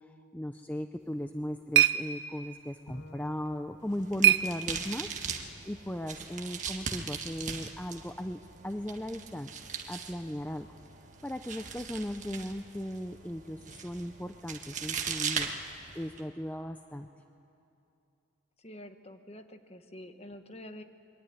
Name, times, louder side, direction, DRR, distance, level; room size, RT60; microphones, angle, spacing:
voice 1, 0.0-5.1 5.6-9.5 9.9-10.7 11.2-15.5 15.9-17.1, left 1 dB, 10° left, 7 dB, 0.5 m, -37 dB
sound 1, 1.0-5.2, right 11 dB, 60° right, 0.7 m, -29 dB
Bowed string instrument, 2.9-6.1, left 2 dB, 70° left, 2.1 m, -54 dB
sound 2, 3.9-16.2, right 6 dB, 40° right, 1.6 m, -40 dB
voice 2, 18.6-20.8, left 1 dB, 30° left, 8 dB, 1.3 m, -47 dB
25.5 x 23.0 x 9.6 m, 2.7 s
head